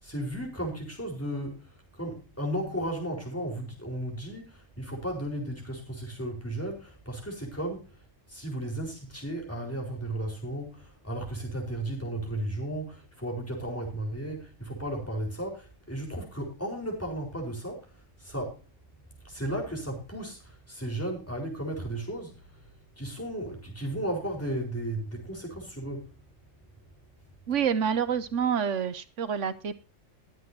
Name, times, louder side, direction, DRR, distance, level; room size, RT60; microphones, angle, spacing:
voice 1, 0.0-8.0 8.3-18.6 19.2-22.7 23.0-26.1, right 1 dB, 10° left, 4.4 m, -35 dB
voice 2, 27.5-29.8, right 7 dB, 70° right, 1.2 m, -27 dB
22.0 x 7.9 x 2.8 m
omnidirectional pair, 1.3 m